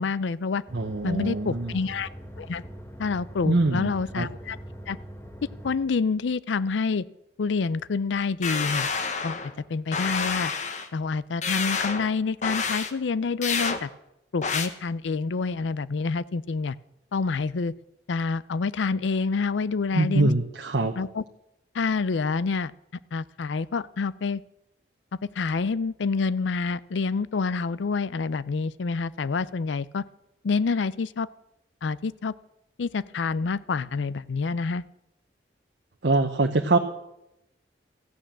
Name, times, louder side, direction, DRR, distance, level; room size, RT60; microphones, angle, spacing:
voice 1, 0.0-0.6 1.0-2.1 2.4-2.6 3.0-4.6 4.9-5.0 5.6-7.0 7.4-8.9 9.2-9.4 9.7-10.5 10.9-13.9 14.3-16.8 17.1-17.7 18.1-20.3 21.0-21.2 21.7-22.7 23.1-24.4 25.4-30.0 30.4-31.3 31.8-32.3 32.8-34.8, left 4 dB, 80° left, 19 dB, 0.5 m, -27 dB
sound 1, 0.7-5.8, equal, 15° left, 1.4 m, -42 dB
voice 2, 0.7-1.8 3.4-4.3 19.9-20.9 36.0-36.8, right 2 dB, 65° right, 4 dB, 0.9 m, -24 dB
sound 2, 8.4-9.5 9.9-10.9 11.4-12.1 12.4-12.9 13.4-13.8 14.4-14.7, left 5 dB, 40° left, 1.0 m, -28 dB
14.0 x 9.2 x 7.4 m, 0.86 s
head